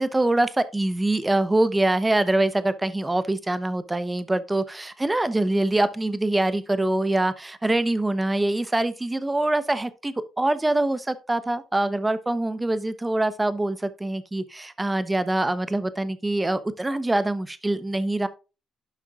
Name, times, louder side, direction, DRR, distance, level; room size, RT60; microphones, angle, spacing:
voice 1, 0.0-18.3, right 2 dB, 15° right, 0.8 m, -24 dB
11.0 x 5.8 x 2.4 m
cardioid pair, 75°, 0 cm